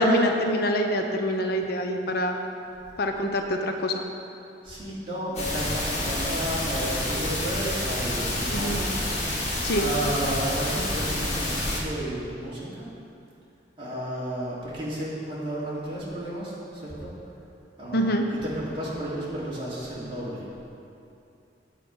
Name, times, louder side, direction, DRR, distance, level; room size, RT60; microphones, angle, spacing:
voice 1, 0.0-2.4 3.0-4.0 8.5-8.8 9.6-9.9 17.9-18.2, equal, 60° left, 4 dB, 0.8 m, -25 dB
voice 2, 4.7-8.9 9.7-11.6 11.8-12.9 13.8-16.5 16.8-17.1 17.8-18.1 18.4-20.4, right 1 dB, 30° right, -8 dB, 2.7 m, -32 dB
sound 1, 5.4-11.8, left 1 dB, 40° left, 2.0 m, -28 dB
9.1 x 8.2 x 5.4 m, 2.6 s
head